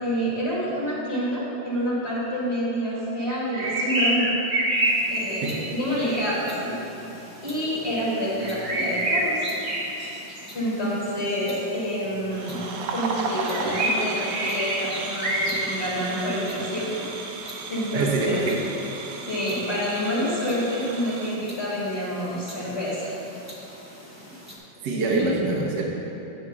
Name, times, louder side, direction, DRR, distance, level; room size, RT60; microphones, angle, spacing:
voice 1, 0.0-4.3 5.1-6.8 7.4-9.5 10.5-12.6 12.9-17.1 17.7-18.4 19.3-23.1 24.9-25.3, equal, 35° left, -8 dB, 1.5 m, -28 dB
sound 1, 3.3-6.2 8.4-10.4 13.5-15.6, right 1 dB, 45° right, 0.8 m, -26 dB
sound 2, 4.8-24.6, equal, 15° right, 0.5 m, -45 dB
sound 3, 12.3-21.4, right 4 dB, 80° right, 1.4 m, -35 dB
voice 2, 17.9-18.6 24.8-25.9, right 3 dB, 65° right, -2 dB, 1.4 m, -25 dB
8.6 x 3.6 x 6.5 m, 2.9 s
omnidirectional pair, 2.1 m